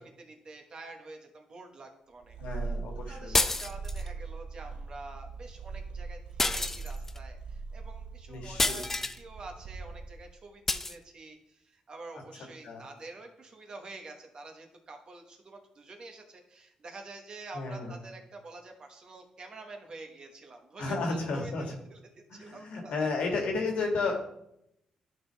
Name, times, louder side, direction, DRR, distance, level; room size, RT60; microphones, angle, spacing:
voice 1, 0.0-2.4 3.1-23.4, right 3 dB, 40° right, 4 dB, 1.2 m, -48 dB
Purr, 2.2-10.3, right 4 dB, 60° right, 0.6 m, -40 dB
voice 2, 2.4-3.4 8.3-8.9 12.6-12.8 17.5-18.0 20.8-21.7 22.3-24.2, left 3 dB, 80° left, 2 dB, 1.7 m, -32 dB
sound 1, 3.3-4.1 6.4-7.2 8.6-9.2 10.7-11.0, left 2 dB, 15° left, 0.4 m, -28 dB
11.5 x 4.5 x 3.4 m, 0.80 s
cardioid pair, 110°, 2 cm